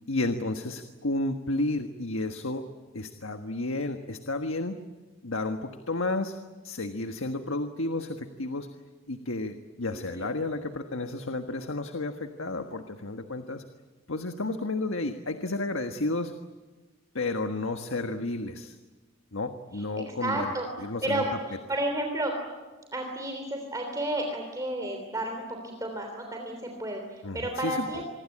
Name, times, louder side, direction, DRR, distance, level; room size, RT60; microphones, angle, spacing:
voice 1, 0.1-2.6 2.9-4.8 5.2-6.4 6.6-8.7 9.1-13.6 14.1-16.3 17.1-18.7 19.3-20.5 20.8-21.2 27.2-28.0, left 2 dB, 80° left, 6 dB, 1.5 m, -32 dB
voice 2, 9.9-10.3 19.7-20.7 21.0-22.3 22.9-28.0, right 1 dB, 15° right, 2 dB, 3.3 m, -32 dB
26.5 x 22.5 x 8.7 m, 1.3 s
head